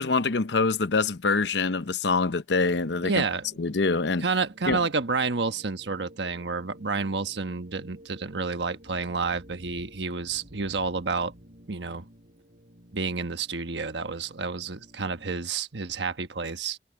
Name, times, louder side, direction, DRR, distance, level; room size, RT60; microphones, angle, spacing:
voice 1, 0.0-3.2 3.6-4.2 4.7-4.8, left 4 dB, 85° left, 0.8 m, -25 dB
sound 1, 2.6-15.4, equal, 50° right, 5.1 m, -53 dB
voice 2, 3.0-3.5 4.2-11.3 11.7-12.0 12.9-16.8, right 4 dB, 90° right, 1.3 m, -29 dB
head